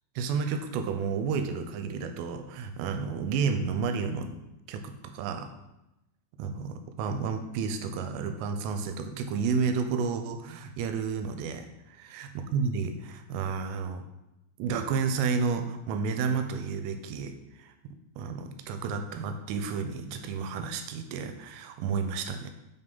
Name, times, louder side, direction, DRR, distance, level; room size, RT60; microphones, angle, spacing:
voice 1, 0.2-4.4 4.7-5.5 6.4-14.0 14.6-17.3 17.6-22.5, right 5 dB, 85° right, 7 dB, 3.3 m, -31 dB
6.3 x 5.7 x 5.4 m, 0.93 s
omnidirectional pair, 5.7 m